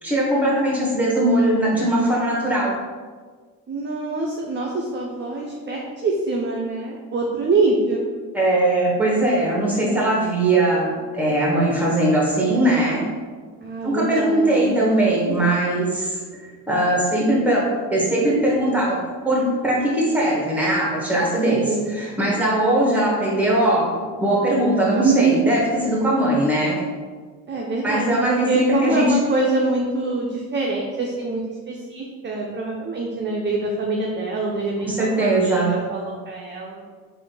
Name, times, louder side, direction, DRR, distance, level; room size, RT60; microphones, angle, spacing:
voice 1, 0.0-2.8 8.3-13.1 13.8-26.8 27.8-29.2 34.8-35.8, right 1 dB, 5° right, -3 dB, 1.4 m, -20 dB
voice 2, 3.7-8.1 13.6-14.8 21.4-21.9 24.8-25.3 27.5-36.8, right 3 dB, 25° right, -1 dB, 0.6 m, -24 dB
3.6 x 2.7 x 3.9 m, 1.5 s
supercardioid pair, 65°, 42 cm